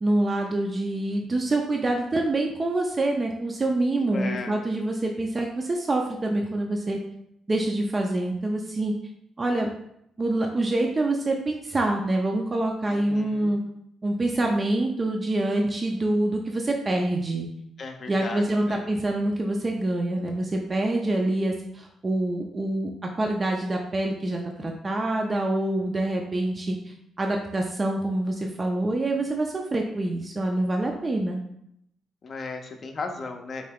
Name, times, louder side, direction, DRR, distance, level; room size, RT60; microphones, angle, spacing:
voice 1, 0.0-7.0 7.5-8.9 9.4-9.7 10.2-13.6 14.0-17.5 18.1-22.9 23.2-31.4, right 2 dB, 30° right, 1 dB, 0.4 m, -26 dB
voice 2, 4.0-4.6 12.9-13.5 17.8-18.8 32.2-33.7, left 4 dB, 45° left, 4 dB, 0.5 m, -36 dB
3.6 x 2.2 x 3.4 m, 0.76 s
cardioid pair, 90°, 0 cm